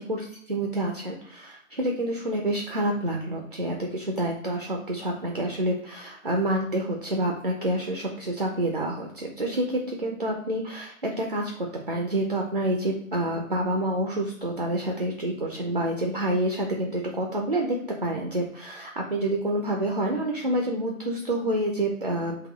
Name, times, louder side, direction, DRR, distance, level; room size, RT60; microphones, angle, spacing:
voice 1, 0.0-22.5, right 1 dB, 40° right, 1 dB, 0.5 m, -28 dB
3.8 x 2.9 x 2.9 m, 0.66 s
hypercardioid pair, 170°, 41 cm